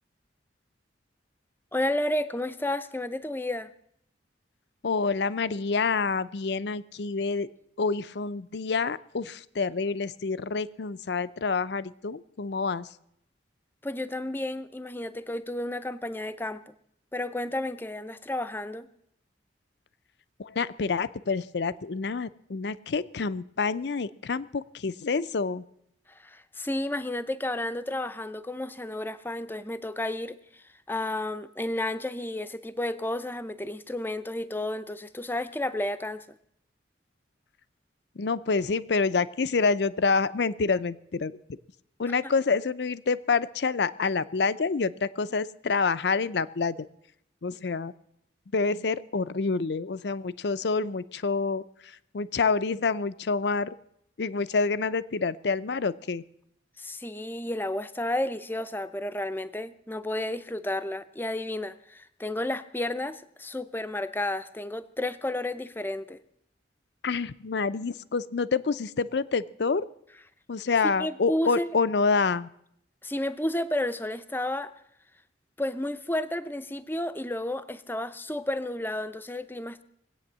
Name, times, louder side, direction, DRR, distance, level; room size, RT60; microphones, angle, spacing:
voice 1, 1.7-3.7 13.8-16.7 17.1-18.9 26.1-36.2 42.1-42.2 56.8-66.2 71.0-71.7 73.0-74.7 75.6-79.8, left 1 dB, 10° left, 12 dB, 0.6 m, -32 dB
voice 2, 4.8-7.5 7.8-12.9 20.4-25.6 38.2-41.4 42.0-46.9 47.4-47.9 48.5-51.6 52.1-53.7 54.2-56.2 67.0-69.8 70.5-72.5, left 4 dB, 65° left, 16 dB, 0.5 m, -27 dB
20.5 x 8.6 x 7.4 m, 0.73 s
head